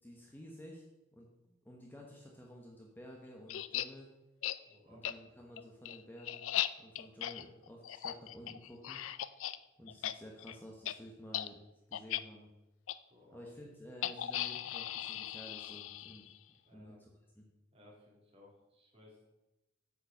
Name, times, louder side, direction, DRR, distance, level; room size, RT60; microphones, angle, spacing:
voice 1, 0.0-0.8 1.1-4.1 4.9-6.4 6.8-9.0 9.8-11.6 11.9-12.5 13.3-16.3 16.7-17.1 17.4-17.5, equal, 10° left, -1 dB, 1.0 m, -52 dB
sound 1, 3.5-3.9 4.4-4.6 5.0-5.1 5.6-9.6 9.9-10.1 10.4-10.5 10.8-10.9 11.3-11.5 11.9-12.2 12.9-13.0 14.0-16.4, left 12 dB, 80° left, 0.4 m, -38 dB
voice 2, 4.7-5.1 13.1-13.5 16.6-17.0 17.7-19.3, left 1 dB, 30° right, -3 dB, 3.0 m, -61 dB
8.7 x 5.1 x 6.7 m, 0.97 s
head